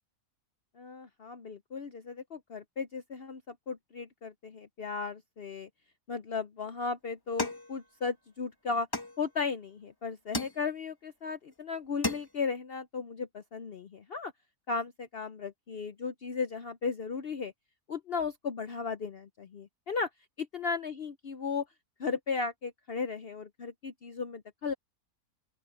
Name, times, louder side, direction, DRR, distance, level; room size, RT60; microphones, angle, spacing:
voice 1, 0.8-5.7 6.1-8.9 9.2-14.3 14.7-17.5 17.9-20.1 20.4-21.7 22.0-24.7, left 5 dB, 50° left, 0.8 m, -36 dB
sound 1, 7.4-8.3 8.9-9.7 10.3-11.0 11.5-11.6 11.8-12.6, left 2 dB, 15° left, 1.5 m, -37 dB
open air
omnidirectional pair, 1.6 m